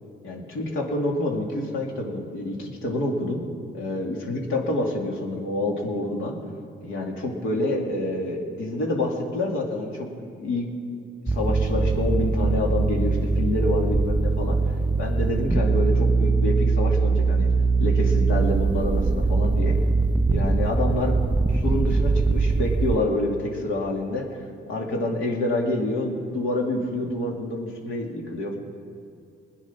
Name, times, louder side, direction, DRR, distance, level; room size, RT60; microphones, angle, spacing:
voice 1, 0.2-3.4 3.7-6.4 6.8-10.1 10.4-10.7 11.2-14.6 15.0-17.5 17.8-19.8 20.3-21.2 21.5-28.6, left 1 dB, 85° left, 0 dB, 2.7 m, -27 dB
sound 1, 11.3-23.0, right 3 dB, 10° right, 0.3 m, -22 dB
20.5 x 9.5 x 5.8 m, 2.5 s
cardioid pair, 90°, 20 cm